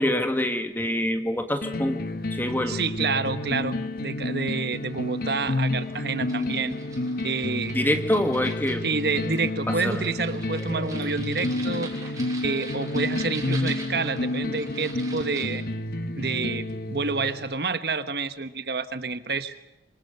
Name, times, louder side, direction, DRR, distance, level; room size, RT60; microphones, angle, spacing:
voice 1, 0.0-2.0 2.3-2.8 7.7-8.8 9.2-9.4 9.8-10.0 10.6-10.7, left 1 dB, 10° left, 6 dB, 1.7 m, -25 dB
sound 1, 1.6-17.5, left 1 dB, 55° left, 1.3 m, -30 dB
voice 2, 2.7-6.8 7.2-7.7 8.8-11.9 12.4-15.6 16.2-19.5, right 4 dB, 60° right, 10 dB, 1.2 m, -28 dB
sound 2, 4.9-15.5, right 3 dB, 20° right, 6.2 m, -44 dB
26.5 x 25.0 x 6.7 m, 0.95 s
head